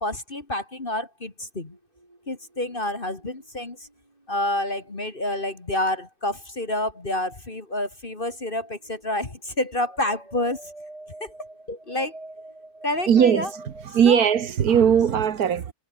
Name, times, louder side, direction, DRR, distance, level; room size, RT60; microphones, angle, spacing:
voice 1, 0.0-1.8 2.3-3.9 4.3-10.6 11.2-11.3 11.7-12.1 12.8-13.5 14.0-14.3, left 1 dB, 30° left, 2.5 m, -28 dB
sound 1, 1.7-5.5 8.3-13.9, right 2 dB, 20° right, 3.0 m, -47 dB
voice 2, 13.1-15.7, right 8 dB, 65° right, 1.7 m, -19 dB
omnidirectional pair, 1.8 m